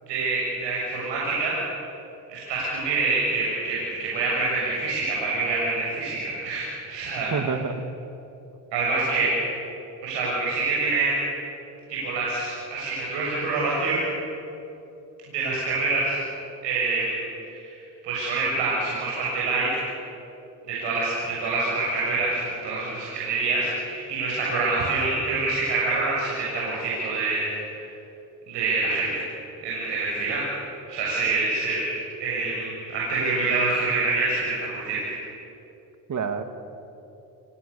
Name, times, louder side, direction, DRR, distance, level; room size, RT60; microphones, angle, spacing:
voice 1, 0.1-1.6 2.3-7.3 8.7-9.3 10.0-11.2 11.9-14.0 15.3-16.2 16.6-17.2 17.5-17.7 18.0-19.7 20.7-27.5 28.5-29.1 29.6-30.4 30.9-31.8 32.2-35.0, right 3 dB, 85° right, -5 dB, 7.0 m, -26 dB
voice 2, 7.3-7.8 36.1-36.4, right 5 dB, 45° right, 8 dB, 2.2 m, -27 dB
28.5 x 23.0 x 7.0 m, 2.9 s
cardioid pair, 105°, 41 cm